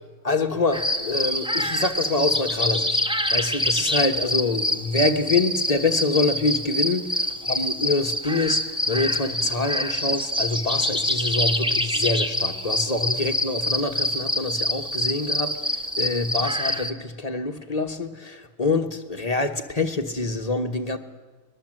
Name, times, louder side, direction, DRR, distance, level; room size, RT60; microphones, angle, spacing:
voice 1, 0.2-3.0 3.3-15.6 16.0-21.0, left 3 dB, 30° left, 6 dB, 1.2 m, -26 dB
sound 1, 0.7-16.9, left 1 dB, 5° right, 0.8 m, -26 dB
23.0 x 21.0 x 7.7 m, 1.3 s
omnidirectional pair, 1.6 m